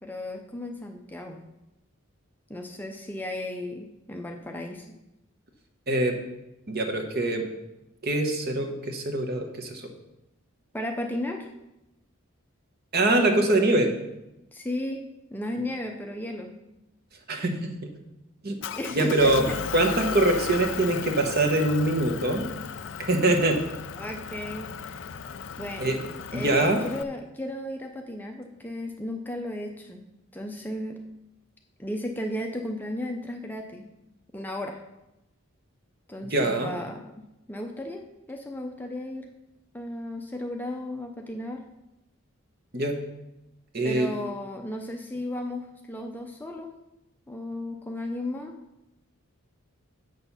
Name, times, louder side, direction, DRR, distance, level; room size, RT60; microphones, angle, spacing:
voice 1, 0.0-1.4 2.5-4.9 10.7-11.5 14.5-15.0 15.3-16.5 18.7-19.5 24.0-25.2 25.6-26.0 26.3-30.0 30.3-31.0 31.8-33.8 34.3-34.8 36.1-39.3 39.7-41.6 43.8-46.7 47.3-48.6, left 1 dB, 10° left, 3 dB, 0.5 m, -34 dB
voice 2, 5.9-6.2 6.7-7.5 8.0-9.9 12.9-13.9 17.3-17.9 18.4-18.6 18.9-19.5 19.7-22.5 23.1-23.6 25.8-26.0 26.3-26.8 36.3-36.7 42.7-43.0 43.7-44.1, right 2 dB, 45° right, 4 dB, 1.2 m, -24 dB
Motor vehicle (road) / Engine, 18.6-27.0, left 7 dB, 55° left, 0.4 m, -36 dB
8.0 x 6.7 x 5.6 m, 0.92 s
head